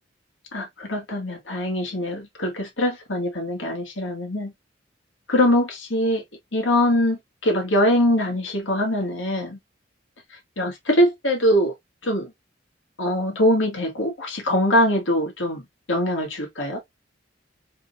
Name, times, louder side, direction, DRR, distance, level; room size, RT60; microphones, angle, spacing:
voice 1, 0.5-4.5 5.3-6.2 6.5-9.6 10.6-11.7 12.0-12.3 13.0-15.6 15.9-16.8, left 1 dB, 85° left, 2.1 m, -22 dB
4.8 x 3.7 x 2.7 m
head